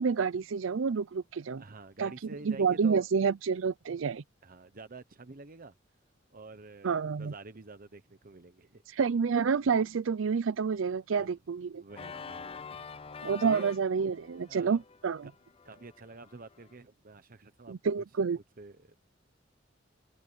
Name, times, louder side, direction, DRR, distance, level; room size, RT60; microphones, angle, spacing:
voice 1, 0.0-1.6 2.0-4.2 6.8-7.3 8.9-11.8 13.2-15.3 17.7-18.4, right 5 dB, 85° right, 0.5 m, -29 dB
voice 2, 1.6-3.1 4.4-5.7 6.3-8.8 11.1-11.4 11.7-13.1 13.4-13.8 14.5-14.8 15.6-18.0 18.6-19.0, right 3 dB, 50° right, 1.0 m, -48 dB
Organ, 11.9-16.7, left 5 dB, 30° left, 0.5 m, -46 dB
open air
head